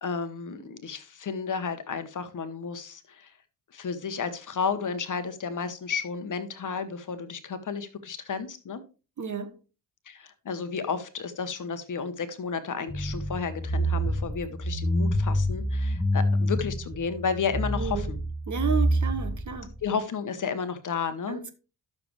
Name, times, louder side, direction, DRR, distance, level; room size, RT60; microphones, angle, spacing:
voice 1, 0.0-3.3 3.7-8.8 10.1-18.2 19.8-21.4, left 6 dB, 40° left, 1.2 m, -32 dB
voice 2, 9.2-9.5 17.7-18.1 18.5-19.7 21.3-21.5, right 8 dB, 35° right, 1.4 m, -32 dB
sound 1, 12.9-19.8, equal, 5° left, 0.9 m, -27 dB
11.5 x 7.0 x 3.2 m
figure-of-eight pair, 40°, 49 cm